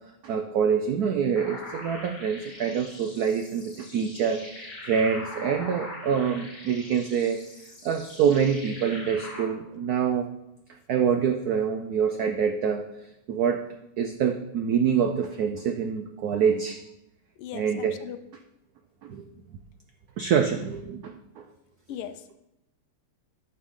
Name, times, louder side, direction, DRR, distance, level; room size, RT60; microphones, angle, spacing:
voice 1, 0.2-4.4 4.8-7.4 7.8-10.3 10.9-13.6 14.0-16.8 17.5-18.0 19.0-19.3 20.2-21.5, right 7 dB, 90° right, 6 dB, 0.8 m, -26 dB
sound 1, 1.4-9.4, left 1 dB, 60° left, 3.1 m, -42 dB
voice 2, 17.4-18.2 21.9-22.3, left 10 dB, 90° left, 9 dB, 1.5 m, -38 dB
10.5 x 6.9 x 3.7 m, 0.86 s
omnidirectional pair, 2.3 m